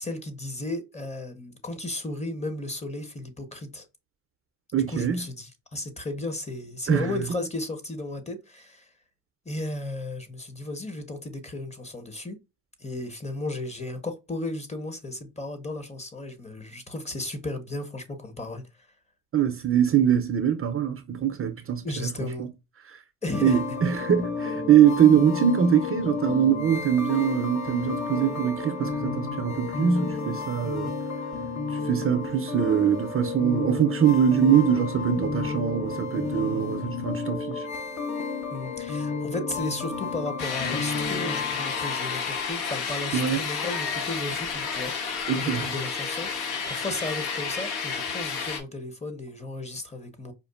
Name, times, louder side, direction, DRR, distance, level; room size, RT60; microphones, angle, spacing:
voice 1, 0.0-3.8 4.9-8.9 9.5-12.4 12.8-18.6 21.8-22.5 23.2-23.6 36.8-37.1 38.5-50.3, left 2 dB, 15° left, 1.0 m, -34 dB
voice 2, 4.7-5.2 6.9-7.1 19.3-22.1 22.9-23.0 23.4-31.0 31.7-37.7 43.1-43.4 45.3-45.7, right 8 dB, 30° right, 0.6 m, -23 dB
sound 1, 23.3-42.5, left 4 dB, 40° left, 0.9 m, -32 dB
sound 2, 40.4-48.6, left 5 dB, 65° left, 1.2 m, -31 dB
5.0 x 2.4 x 2.3 m
supercardioid pair, 70°, 42 cm